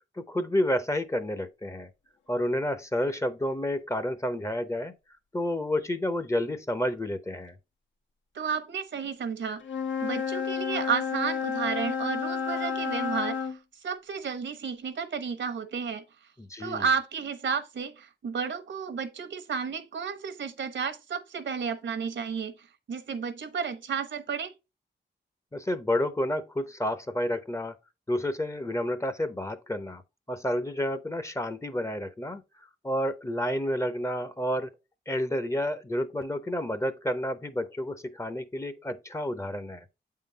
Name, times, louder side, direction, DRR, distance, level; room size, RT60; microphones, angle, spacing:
voice 1, 0.2-1.9 2.3-4.9 5.3-7.5 16.4-16.9 25.5-27.8 28.1-30.0 30.3-32.4 32.8-34.7 35.1-39.8, left 1 dB, 15° left, 0.6 m, -30 dB
voice 2, 8.3-9.6 10.0-13.6 13.8-16.0 16.6-22.5 22.9-24.5, right 6 dB, 75° right, 0.9 m, -32 dB
Wind instrument woodwind instrument, 9.6-13.6, left 6 dB, 80° left, 1.2 m, -31 dB
8.1 x 3.8 x 3.9 m
wide cardioid pair, 110°, 19 cm